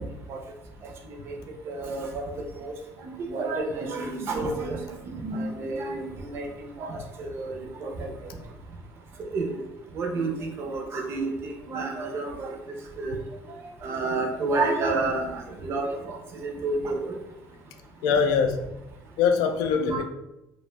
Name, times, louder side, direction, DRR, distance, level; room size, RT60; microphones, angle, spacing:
voice 1, 1.7-2.2 2.6-2.7 3.0-6.5 6.8-8.1 9.2-9.6 10.0-12.6 13.0-13.2 13.8-17.2 19.7-20.0, right 3 dB, 40° right, 2 dB, 0.4 m, -30 dB
voice 2, 18.0-18.7 19.2-20.0, left 6 dB, 85° left, 7 dB, 0.3 m, -23 dB
2.5 x 2.1 x 3.1 m, 0.89 s
cardioid pair, 165°, 6 cm